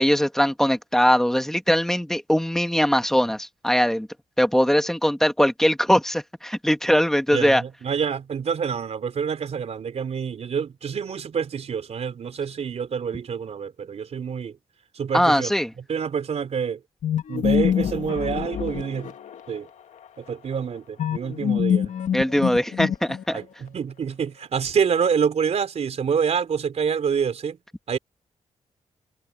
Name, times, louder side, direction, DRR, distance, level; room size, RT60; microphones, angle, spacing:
voice 1, 0.0-4.1 4.4-7.6 15.1-15.7 22.1-23.4, equal, 5° left, 1.6 m, -21 dB
voice 2, 7.3-14.5 14.9-15.5 15.9-16.8 17.3-19.1 19.5-19.7 20.2-21.9 23.3-27.6 27.9-28.0, right 7 dB, 60° right, 4.0 m, -27 dB
sound 1, 17.0-19.6 21.0-23.4, left 9 dB, 90° left, 1.8 m, -25 dB
wide cardioid pair, 140°, 12 cm